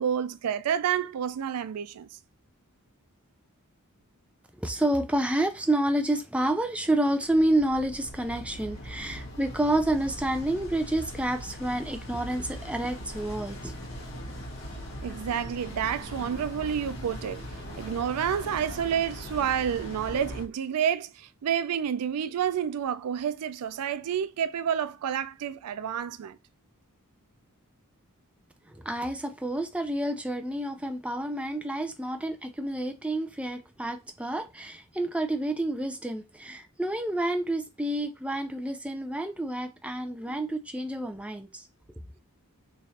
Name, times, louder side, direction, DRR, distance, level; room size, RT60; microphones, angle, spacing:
voice 1, 0.0-2.1 15.0-17.4 17.8-26.4 40.3-40.4, right 8 dB, 90° right, 0.4 m, -29 dB
voice 2, 4.6-13.8 28.7-41.6, right 1 dB, 5° right, 0.4 m, -29 dB
sound 1, 7.3-20.4, equal, 60° left, 1.2 m, -41 dB
sound 2, 13.1-18.9, equal, 40° right, 1.5 m, -47 dB
3.1 x 2.5 x 4.0 m
head